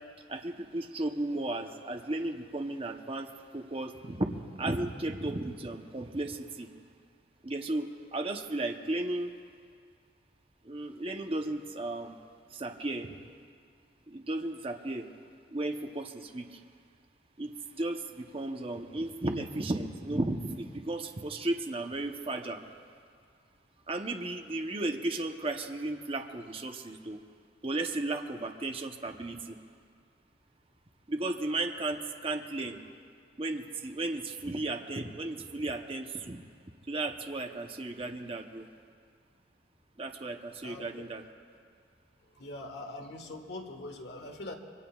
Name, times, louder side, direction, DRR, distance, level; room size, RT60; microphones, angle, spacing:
voice 1, 0.3-6.7 7.4-9.3 10.6-12.2 12.5-13.2 14.1-15.1 15.5-16.6 17.4-22.6 23.9-27.2 27.6-29.6 31.1-32.8 33.4-36.4 36.9-38.7 40.0-41.2, right 2 dB, 30° right, 4 dB, 0.8 m, -34 dB
voice 2, 40.6-41.0 42.3-44.5, left 2 dB, 65° left, 3 dB, 1.6 m, -42 dB
26.0 x 23.0 x 2.4 m, 2.1 s
head